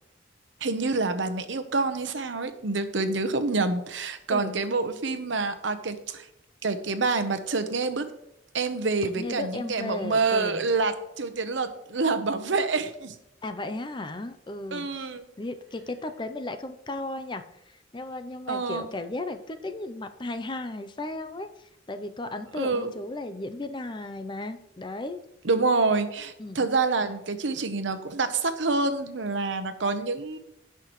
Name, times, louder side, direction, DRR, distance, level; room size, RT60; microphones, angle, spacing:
voice 1, 0.6-6.3 6.6-8.1 8.5-13.1 14.7-15.2 18.5-18.9 22.6-22.9 25.4-30.4, right 3 dB, 75° right, 9 dB, 0.9 m, -27 dB
voice 2, 9.0-10.6 13.4-15.1 15.4-25.2 26.4-26.7, left 2 dB, 25° left, 9 dB, 0.5 m, -35 dB
16.5 x 5.7 x 3.1 m, 0.84 s
head